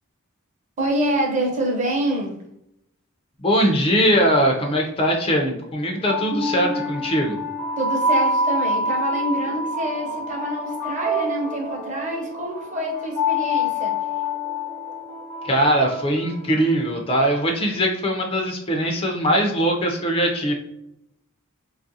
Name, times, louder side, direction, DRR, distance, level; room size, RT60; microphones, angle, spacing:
voice 1, 0.8-2.4 7.8-14.0, right 1 dB, 35° right, 0 dB, 0.7 m, -26 dB
voice 2, 3.4-7.4 15.4-20.5, equal, 25° left, 2 dB, 0.4 m, -21 dB
sound 1, 5.9-17.0, left 1 dB, 70° right, 0.9 m, -26 dB
3.2 x 2.4 x 2.6 m, 0.78 s
head